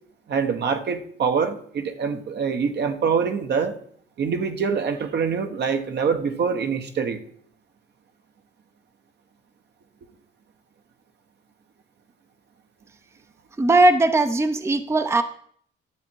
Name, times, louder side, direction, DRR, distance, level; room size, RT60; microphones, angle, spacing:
voice 1, 0.3-3.8 4.2-7.2, right 6 dB, 60° right, 7 dB, 1.2 m, -24 dB
voice 2, 13.6-15.2, right 2 dB, 15° right, 10 dB, 0.6 m, -19 dB
12.0 x 7.3 x 4.6 m, 0.62 s
cardioid pair, 90°, 20 cm